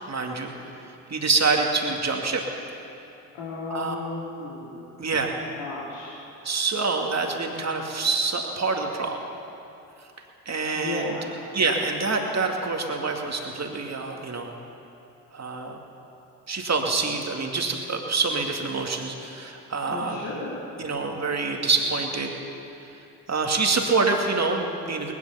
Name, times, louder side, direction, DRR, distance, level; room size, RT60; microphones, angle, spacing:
voice 1, 0.1-0.5 1.1-2.4 3.7-4.0 5.0-5.3 6.4-9.2 10.5-11.1 11.5-14.5 15.3-15.8 16.5-20.3 20.8-22.3 23.3-25.1, right 4 dB, 35° right, 2 dB, 2.4 m, -26 dB
voice 2, 3.4-4.8 5.6-6.1 10.7-11.2 19.9-20.6, left 3 dB, 70° left, -7 dB, 2.5 m, -34 dB
19.5 x 11.5 x 5.7 m, 2.9 s
hypercardioid pair, 40°, 44 cm